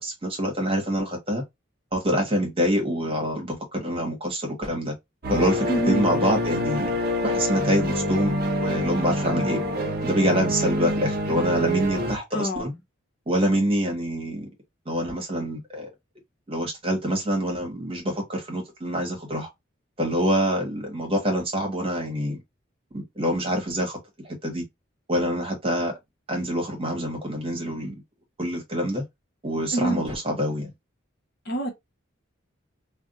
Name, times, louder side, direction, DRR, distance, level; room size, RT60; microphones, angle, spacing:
voice 1, 0.0-1.4 1.9-4.9 5.3-6.9 7.2-8.3 8.6-9.6 10.0-12.7 13.3-14.5 14.8-15.9 16.5-19.5 20.0-22.4 22.9-24.0 24.2-24.6 25.1-26.0 26.3-27.9 28.4-29.0 29.4-30.7, equal, 25° right, 1.0 m, -26 dB
sound 1, 5.2-12.2, equal, 45° right, 0.6 m, -26 dB
voice 2, 5.7-6.1 12.3-12.7 29.7-30.0 31.5-31.7, right 1 dB, 50° left, 0.9 m, -26 dB
2.5 x 2.2 x 3.8 m
head